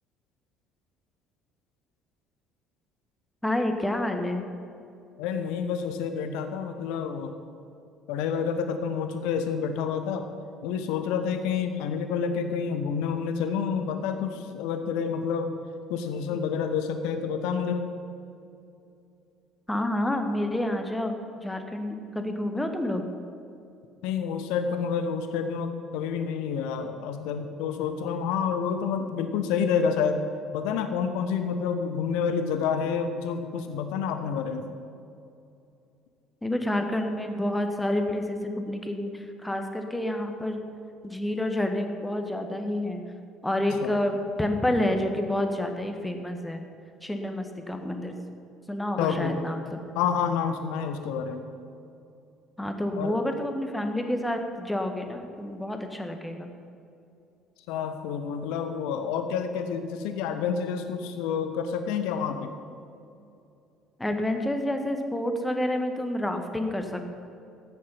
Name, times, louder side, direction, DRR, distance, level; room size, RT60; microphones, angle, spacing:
voice 1, 3.4-4.4 19.7-23.0 36.4-40.6 41.0-43.0 43.4-46.6 47.0-48.2 48.7-49.8 52.6-56.5 64.0-67.1, left 1 dB, 10° left, 5 dB, 1.5 m, -29 dB
voice 2, 5.2-7.4 8.1-10.3 10.6-15.5 15.9-17.9 24.0-30.2 30.5-34.7 43.7-44.0 49.0-49.4 49.9-51.4 53.0-53.2 57.7-62.5, left 6 dB, 60° left, 8 dB, 1.0 m, -29 dB
14.0 x 9.4 x 5.7 m, 2.6 s
figure-of-eight pair, 55°, 0 cm